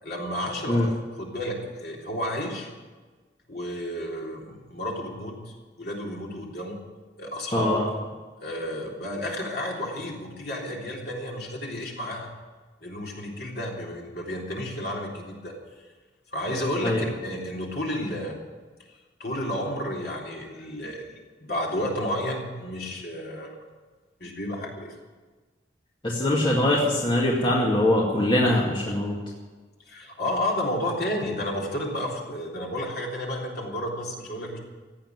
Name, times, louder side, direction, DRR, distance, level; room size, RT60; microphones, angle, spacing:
voice 1, 0.0-2.7 3.5-6.8 7.2-7.9 8.4-12.3 12.8-15.5 16.3-18.4 19.2-21.1 21.4-23.5 24.2-25.0 29.9-34.6, left 1 dB, 55° left, -2 dB, 3.5 m, -31 dB
voice 2, 7.5-7.8 16.8-17.0 26.0-29.1, left 1 dB, 25° left, -4 dB, 2.1 m, -22 dB
15.5 x 8.9 x 9.5 m, 1.3 s
head